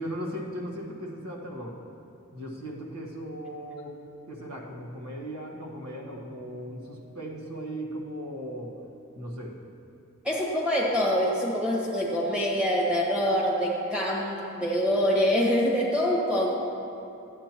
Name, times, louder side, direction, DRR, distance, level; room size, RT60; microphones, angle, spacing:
voice 1, 0.0-1.8 2.3-3.9 4.3-8.8 9.1-9.6, equal, 90° right, -2 dB, 1.4 m, -37 dB
voice 2, 10.2-16.5, equal, 5° right, -5 dB, 1.3 m, -25 dB
12.0 x 8.9 x 3.0 m, 2.6 s
head